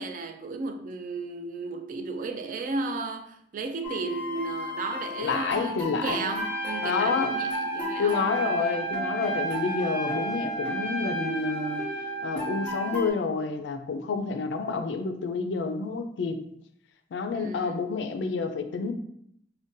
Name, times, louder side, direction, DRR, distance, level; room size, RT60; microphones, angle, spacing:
voice 1, 0.0-8.7 17.3-17.9, right 4 dB, 50° right, 0.3 m, -34 dB
sound 1, 3.8-13.1, left 2 dB, 5° left, 0.6 m, -36 dB
voice 2, 5.2-6.4 6.8-7.3 8.0-11.8 12.2-16.4 17.1-18.9, left 4 dB, 85° left, 0.3 m, -29 dB
Trumpet, 6.3-13.0, right 3 dB, 10° right, 1.1 m, -32 dB
2.6 x 2.2 x 3.7 m
head